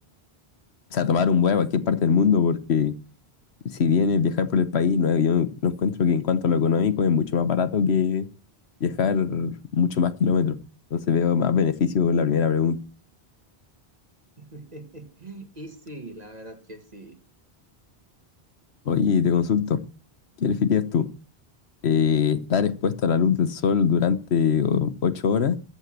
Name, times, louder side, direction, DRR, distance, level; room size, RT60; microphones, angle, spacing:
voice 1, 0.9-3.0 3.7-8.3 8.8-10.6 10.9-12.8 18.9-19.8 20.4-21.1 21.8-25.6, left 6 dB, 85° left, 1.3 m, -22 dB
voice 2, 14.4-17.2, right 1 dB, 40° right, 1.9 m, -42 dB
14.0 x 6.2 x 7.5 m
omnidirectional pair, 1.1 m